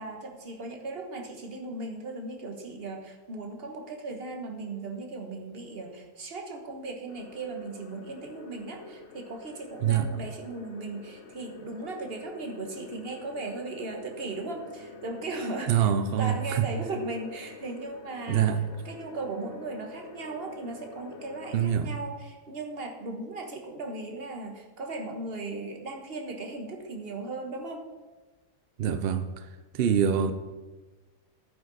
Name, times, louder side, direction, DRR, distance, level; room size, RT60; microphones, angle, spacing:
voice 1, 0.0-15.9 16.2-18.6 18.8-27.9, right 2 dB, 40° right, 3 dB, 1.4 m, -37 dB
sound 1, 7.1-21.7, left 3 dB, 50° left, 1.0 m, -47 dB
voice 2, 15.7-16.7 18.3-18.6 21.5-22.0 28.8-29.4 29.7-30.3, right 9 dB, 80° right, 10 dB, 0.5 m, -25 dB
11.5 x 9.4 x 4.0 m, 1.3 s
omnidirectional pair, 1.7 m